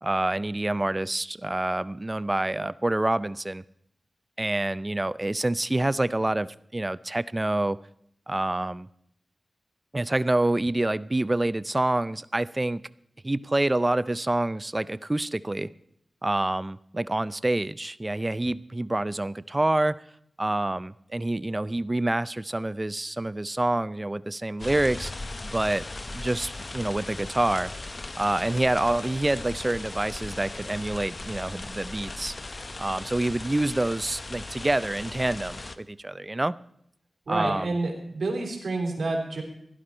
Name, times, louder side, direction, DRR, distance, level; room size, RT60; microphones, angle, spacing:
voice 1, 0.0-3.6 4.4-7.8 8.3-8.9 9.9-12.8 13.2-15.7 16.2-20.0 20.4-25.1 25.4-25.9 26.1-27.7 28.2-32.3 32.8-36.5 37.3-37.7, right 1 dB, 25° right, 17 dB, 0.4 m, -27 dB
sound 1, 24.6-35.8, left 2 dB, 40° left, 0.7 m, -38 dB
voice 2, 37.3-39.4, right 2 dB, 75° right, 1 dB, 3.7 m, -29 dB
16.0 x 11.5 x 4.4 m, 0.72 s
wide cardioid pair, 75°, 0 cm